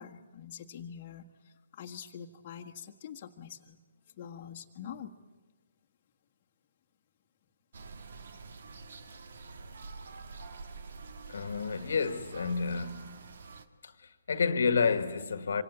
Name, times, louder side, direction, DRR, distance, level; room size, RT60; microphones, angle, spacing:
voice 1, 0.0-3.8 4.2-5.1, left 8 dB, 35° left, 1.6 m, -45 dB
sound 1, 7.7-13.7, right 4 dB, 50° right, 1.8 m, -47 dB
voice 2, 11.3-13.2 13.8-15.6, left 5 dB, 55° left, 1.8 m, -30 dB
26.0 x 25.5 x 8.7 m
figure-of-eight pair, 135°, 0 cm